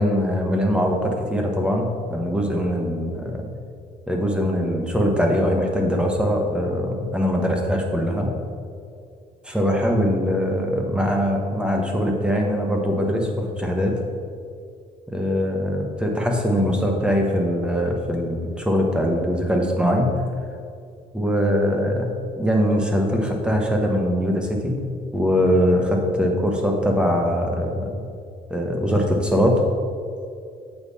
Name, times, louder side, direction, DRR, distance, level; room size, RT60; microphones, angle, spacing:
voice 1, 0.0-3.5 4.1-8.3 9.4-14.0 15.1-20.1 21.1-22.1 22.4-24.8 25.1-28.0 28.5-29.6, equal, 5° right, 1 dB, 1.1 m, -22 dB
7.9 x 5.5 x 4.2 m, 2.4 s
cardioid pair, 110°, 17 cm